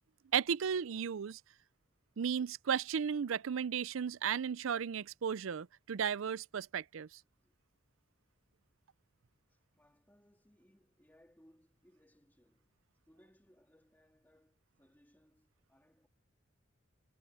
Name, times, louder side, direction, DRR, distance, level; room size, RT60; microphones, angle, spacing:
voice 1, 0.3-1.4 2.2-7.2, right 7 dB, 70° right, 0.5 m, -35 dB
voice 2, 9.5-12.7 13.0-16.1, equal, 10° left, 2.8 m, -67 dB
head